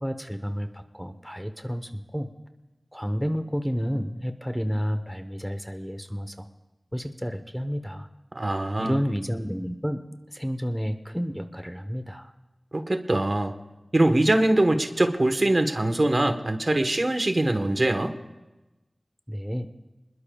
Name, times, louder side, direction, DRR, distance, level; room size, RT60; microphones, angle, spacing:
voice 1, 0.0-2.3 2.9-6.4 6.9-8.1 8.8-10.0 10.3-12.3 19.3-19.7, equal, ahead, 8 dB, 1.0 m, -30 dB
voice 2, 8.3-9.0 12.7-13.5 13.9-18.1, right 1 dB, 50° right, 7 dB, 1.2 m, -23 dB
28.5 x 21.0 x 2.3 m, 1.1 s
wide cardioid pair, 55°, 0 cm